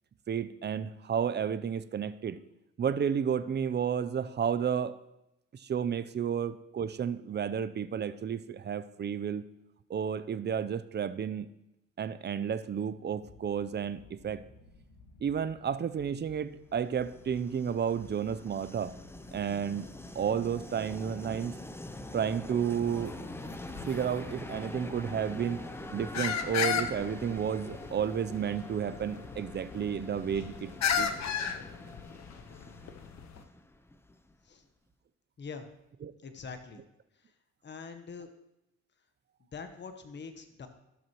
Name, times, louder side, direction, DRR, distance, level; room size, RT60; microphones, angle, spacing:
voice 1, 0.3-2.4 2.8-4.9 5.6-9.4 9.9-11.5 12.0-14.4 15.2-18.9 19.3-19.9 20.1-21.5 22.1-23.2 23.8-25.6 25.9-30.7 31.0-31.1 36.0-36.1, right 8 dB, 35° right, 14 dB, 0.6 m, -32 dB
sound 1, 13.1-30.2, left 3 dB, 80° left, 1.4 m, -57 dB
Train, 16.7-34.5, left 1 dB, 10° left, 0.6 m, -45 dB
sound 2, 22.8-33.4, left 7 dB, 65° left, 0.8 m, -36 dB
voice 2, 36.2-36.8 37.1-37.3 37.6-38.3 39.4-40.7, left 5 dB, 35° left, 7 dB, 1.1 m, -44 dB
17.0 x 6.1 x 3.1 m, 0.87 s
cardioid pair, 90°, 30 cm